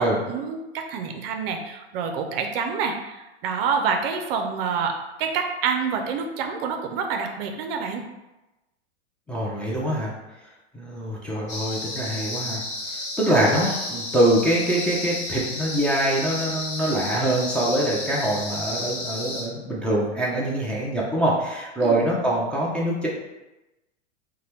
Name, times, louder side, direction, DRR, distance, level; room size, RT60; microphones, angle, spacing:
voice 1, 0.0-8.0 21.8-22.0, right 5 dB, 55° right, 4 dB, 0.5 m, -27 dB
voice 2, 9.3-10.1 10.7-12.6 13.2-23.1, right 1 dB, 5° left, -6 dB, 0.5 m, -24 dB
sound 1, 11.5-19.4, left 2 dB, 50° left, 1.3 m, -32 dB
2.7 x 2.2 x 3.3 m, 1.0 s
hypercardioid pair, 110°, 35 cm